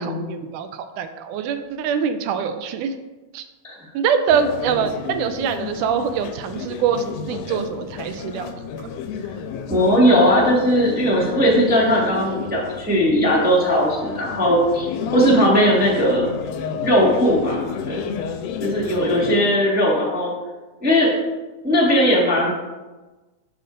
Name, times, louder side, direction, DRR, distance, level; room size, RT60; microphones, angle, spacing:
voice 1, 0.0-3.0 3.3-3.4 3.9-8.5, right 7 dB, 85° right, 9 dB, 2.1 m, -24 dB
sound 1, 4.3-19.4, left 7 dB, 85° left, 2.1 m, -32 dB
voice 2, 9.7-14.9 15.1-16.3 16.8-18.0 18.6-20.3 20.8-21.1 21.6-22.5, equal, 5° right, -5 dB, 0.7 m, -18 dB
11.5 x 6.6 x 2.6 m, 1.2 s
omnidirectional pair, 3.6 m